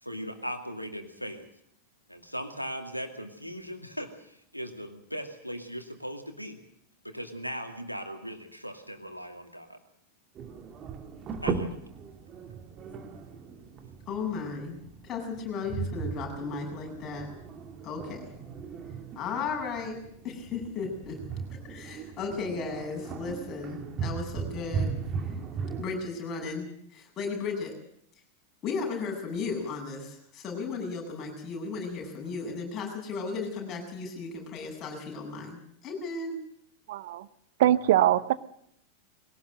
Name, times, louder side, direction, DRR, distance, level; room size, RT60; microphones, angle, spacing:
voice 1, 0.0-1.5 2.1-6.6 7.0-9.8 11.4-11.8, equal, 90° left, 6 dB, 2.4 m, -38 dB
sound 1, 10.3-25.8, right 5 dB, 30° right, 2.4 m, -37 dB
voice 2, 14.1-17.3 17.8-18.3 19.2-20.0 20.2-21.2 21.6-24.9 25.8-27.7 28.6-36.4, left 4 dB, 30° left, 1 dB, 7.9 m, -35 dB
voice 3, 36.9-37.3 37.6-38.3, right 13 dB, 55° right, 16 dB, 0.9 m, -22 dB
22.0 x 17.5 x 8.0 m, 0.71 s
figure-of-eight pair, 90°, 0 cm